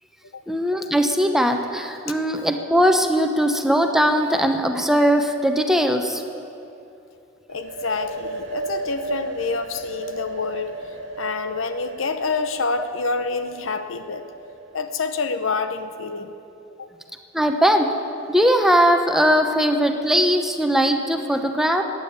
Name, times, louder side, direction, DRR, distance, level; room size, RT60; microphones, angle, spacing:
voice 1, 0.5-6.2 17.3-17.9 18.3-21.8, equal, ahead, 5 dB, 0.9 m, -19 dB
voice 2, 7.5-10.7 11.2-14.2 14.7-16.3 16.8-16.9, left 4 dB, 85° left, 9 dB, 0.9 m, -27 dB
sound 1, 7.5-15.2, right 3 dB, 60° right, 1.6 m, -35 dB
15.5 x 9.7 x 8.8 m, 2.8 s
head